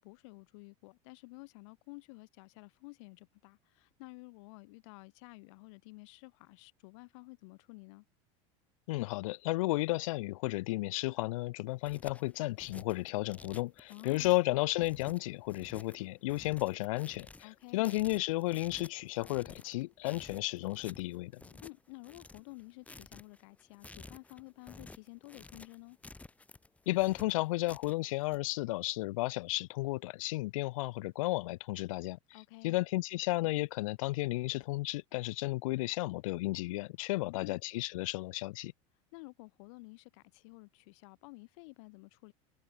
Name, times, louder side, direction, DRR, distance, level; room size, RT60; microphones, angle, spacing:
voice 1, 0.0-8.1 13.9-14.3 17.4-17.9 21.6-26.0 32.3-32.8 37.2-37.6 39.1-42.3, left 28 dB, 70° left, 5.5 m, -52 dB
voice 2, 8.9-21.4 26.9-32.2 32.6-38.7, left 20 dB, 85° left, 1.9 m, -33 dB
sound 1, 11.6-28.4, left 3 dB, 10° left, 4.8 m, -53 dB
supercardioid pair, 155°, 17 cm